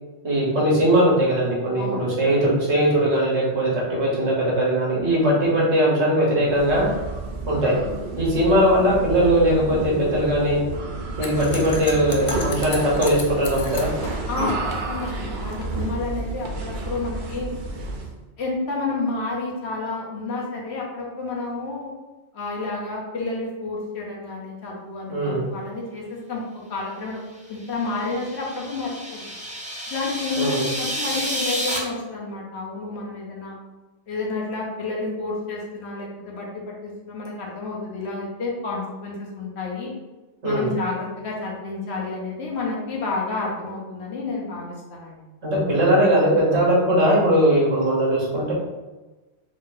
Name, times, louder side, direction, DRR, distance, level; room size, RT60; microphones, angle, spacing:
voice 1, 0.2-6.9 7.5-7.8 8.2-10.6 11.2-13.9 25.1-25.5 30.4-30.6 40.4-40.7 45.4-48.5, equal, 70° right, -5 dB, 1.5 m, -20 dB
voice 2, 1.8-2.1 14.3-17.5 18.4-21.9 22.3-27.2 27.5-29.3 29.9-33.6 34.1-39.9 40.4-45.2, left 3 dB, 65° left, -3 dB, 1.1 m, -30 dB
sound 1, 6.4-18.2, right 3 dB, 55° right, 0.6 m, -31 dB
sound 2, 11.2-15.6, left 3 dB, 50° left, 0.4 m, -34 dB
sound 3, 27.6-31.8, equal, 10° right, 0.6 m, -30 dB
3.6 x 2.7 x 3.8 m, 1.2 s
omnidirectional pair, 1.2 m